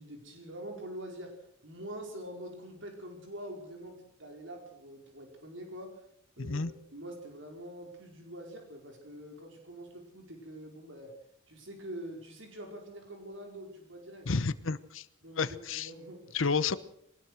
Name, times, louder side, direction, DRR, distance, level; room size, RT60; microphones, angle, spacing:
voice 1, 0.0-1.3 1.6-3.9 4.2-6.0 6.4-11.1 11.5-14.3 15.2-16.4, right 1 dB, 70° right, 2 dB, 4.9 m, -45 dB
voice 2, 6.4-6.7 14.3-15.0 15.4-15.9 16.3-16.8, left 4 dB, 80° left, 14 dB, 1.0 m, -30 dB
22.0 x 19.5 x 6.4 m, 0.73 s
head